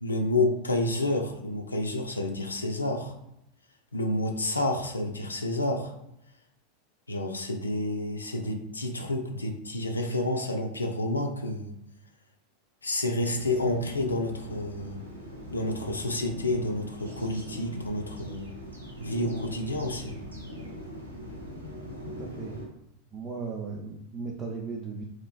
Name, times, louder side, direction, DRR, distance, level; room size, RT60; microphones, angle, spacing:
voice 1, 0.0-3.1 3.9-5.9 7.1-11.7 12.8-15.0 15.5-18.5 19.0-20.2, left 1 dB, 80° left, 3 dB, 0.3 m, -29 dB
sound 1, 13.2-22.7, equal, 85° right, 0.5 m, -41 dB
voice 2, 22.1-22.6 23.1-25.0, right 4 dB, 20° right, -2 dB, 0.4 m, -36 dB
3.0 x 2.3 x 2.2 m, 0.81 s
figure-of-eight pair, 85°, 0 cm